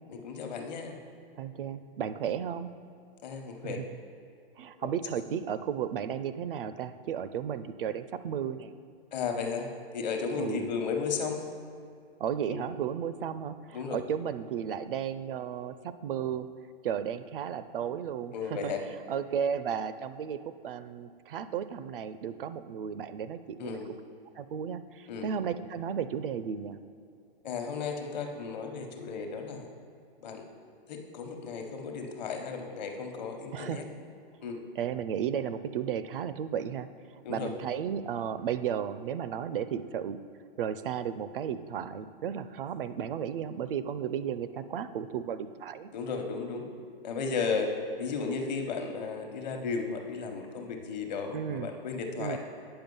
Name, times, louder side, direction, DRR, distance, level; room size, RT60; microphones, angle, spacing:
voice 1, 0.1-1.0 3.2-3.8 4.8-4.9 9.1-9.7 9.9-11.4 12.5-12.6 13.7-14.0 18.3-18.8 23.6-23.9 25.1-25.3 27.4-29.7 30.2-30.4 30.9-33.8 34.4-34.6 37.2-37.5 45.9-46.7 47.0-47.7 48.0-52.4, left 5 dB, 45° left, 4 dB, 1.0 m, -34 dB
voice 2, 1.4-2.7 3.6-4.0 4.6-8.7 10.4-10.7 12.2-16.5 16.8-23.8 24.4-26.8 33.5-33.8 34.8-36.9 37.3-40.2 40.6-45.9 51.3-51.7 52.2-52.4, right 8 dB, 60° right, 13 dB, 0.5 m, -34 dB
8.9 x 5.7 x 5.4 m, 2.4 s
hypercardioid pair, 170°, 30 cm